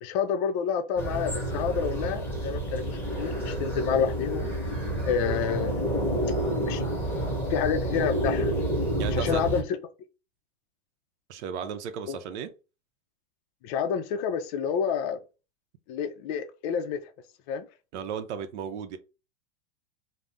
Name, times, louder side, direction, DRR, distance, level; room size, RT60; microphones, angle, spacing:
voice 1, 0.0-4.5 5.1-5.9 6.6-6.8 7.5-8.5 9.1-9.6 12.1-12.2 13.6-15.2 15.9-17.0 17.5-17.7, left 7 dB, 45° left, 0.4 m, -28 dB
sound 1, 1.0-9.6, right 1 dB, 5° left, 1.0 m, -29 dB
voice 2, 9.0-9.4 11.3-12.5 17.9-19.0, right 7 dB, 75° right, 0.6 m, -34 dB
2.5 x 2.0 x 3.4 m
hypercardioid pair, 125°, 35 cm